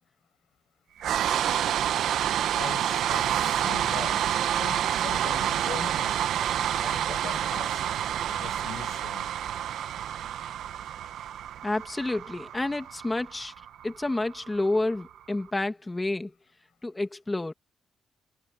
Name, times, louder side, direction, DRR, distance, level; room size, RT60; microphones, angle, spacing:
sound 1, 1.0-15.1, right 10 dB, 80° right, 1.1 m, -28 dB
voice 1, 2.5-6.3 6.8-7.8 8.3-9.3, left 11 dB, 85° left, 6.7 m, -41 dB
voice 2, 11.6-13.5 13.8-16.3 16.8-17.5, left 2 dB, 15° left, 1.5 m, -29 dB
cardioid pair, 140°, 0 cm